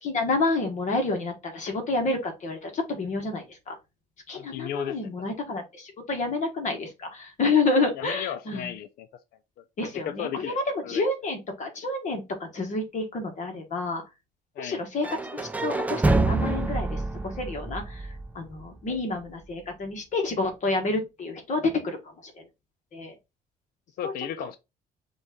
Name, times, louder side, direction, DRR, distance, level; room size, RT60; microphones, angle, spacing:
voice 1, 0.0-3.8 4.3-8.7 9.8-14.0 14.6-15.1 15.3-22.5 22.9-23.1 24.0-24.1, left 3 dB, 45° left, 1.1 m, -29 dB
voice 2, 4.3-5.0 8.0-9.1 9.6-9.7 9.9-10.6 10.8-11.0 14.6-14.8 18.9-19.0 24.0-24.6, left 10 dB, 65° left, 0.5 m, -34 dB
sound 1, 15.0-18.9, right 2 dB, 10° right, 0.4 m, -27 dB
5.2 x 2.4 x 3.5 m
cardioid pair, 110°, 17 cm